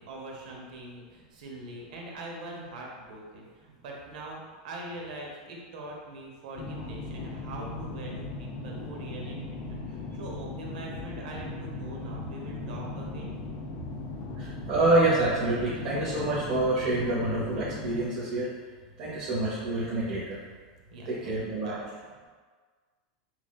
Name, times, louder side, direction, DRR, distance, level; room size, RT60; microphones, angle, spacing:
voice 1, 0.1-13.4 20.9-22.0, right 2 dB, 75° right, -1 dB, 0.9 m, -43 dB
sound 1, 6.5-18.0, left 2 dB, 35° left, 0.6 m, -38 dB
voice 2, 14.4-18.5 19.0-20.4 21.0-21.8, right 2 dB, 45° right, -9 dB, 1.0 m, -27 dB
5.8 x 2.4 x 2.3 m, 1.5 s
supercardioid pair, 140°, 4 cm